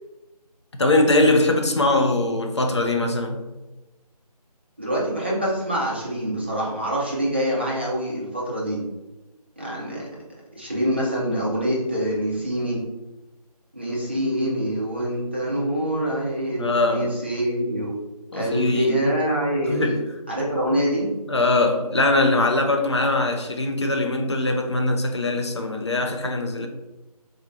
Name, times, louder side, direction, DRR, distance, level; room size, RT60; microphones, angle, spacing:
voice 1, 0.7-3.4 16.6-17.1 18.3-19.0 19.7-20.0 21.3-26.7, left 2 dB, 45° left, 0.6 m, -21 dB
voice 2, 4.8-8.8 9.6-10.1 10.5-12.8 13.7-17.9 18.3-20.0 20.3-21.1, equal, 15° right, 0.5 m, -25 dB
3.7 x 2.6 x 4.3 m
figure-of-eight pair, 160°, 20 cm